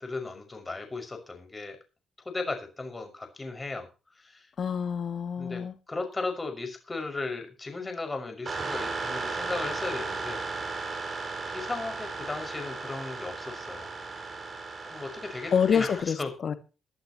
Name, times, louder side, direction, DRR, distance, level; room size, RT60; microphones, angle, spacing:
voice 1, 0.0-1.8 2.2-3.9 4.1-4.5 5.4-5.6 5.9-10.4 10.9-11.0 11.4-13.9 14.9-16.3, left 3 dB, 20° left, 6 dB, 6.1 m, -36 dB
voice 2, 4.6-5.7 15.5-16.2 16.4-16.5, left 7 dB, 50° left, 7 dB, 2.2 m, -26 dB
sound 1, 8.5-16.0, right 4 dB, 40° right, 5.9 m, -35 dB
21.5 x 12.0 x 3.1 m, 0.32 s
cardioid pair, 90°, 0 cm